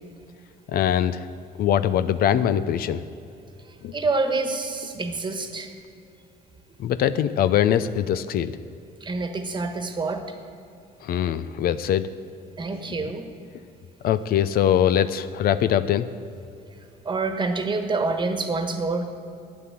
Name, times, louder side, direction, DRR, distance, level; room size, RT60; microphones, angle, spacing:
voice 1, 0.7-1.3 1.6-3.0 3.8-3.9 6.8-8.5 11.0-12.1 14.0-16.1, left 10 dB, 65° left, 13 dB, 0.5 m, -22 dB
voice 2, 3.7-5.7 9.0-10.4 12.6-13.3 17.0-19.0, right 3 dB, 25° right, 6 dB, 1.4 m, -27 dB
12.0 x 9.6 x 7.5 m, 2.6 s
cardioid pair, 110°, 17 cm